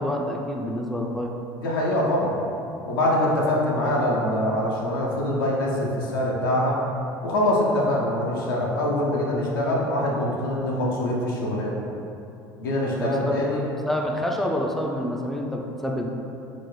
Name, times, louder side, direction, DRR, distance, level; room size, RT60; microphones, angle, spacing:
voice 1, 0.0-1.3 13.0-16.1, left 1 dB, ahead, 0 dB, 0.4 m, -28 dB
voice 2, 1.6-2.4 2.9-6.8 7.2-11.8 12.6-13.6, left 1 dB, 90° left, -4 dB, 0.6 m, -24 dB
3.9 x 2.0 x 3.2 m, 2.7 s
hypercardioid pair, 75°, 11 cm